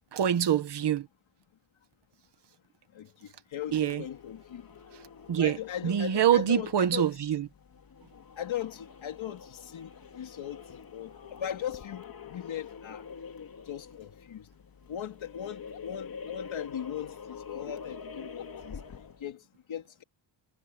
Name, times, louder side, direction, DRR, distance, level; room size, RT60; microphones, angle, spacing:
voice 1, 0.2-1.1 3.7-4.0 5.3-5.6 5.8-7.5, right 9 dB, 60° right, 1.5 m, -25 dB
voice 2, 2.9-4.7 5.4-7.1 8.4-13.1 13.6-14.5 14.9-20.0, left 10 dB, 70° left, 2.7 m, -39 dB
sound 1, 3.6-19.3, left 6 dB, 45° left, 2.3 m, -46 dB
wide cardioid pair, 160°, 48 cm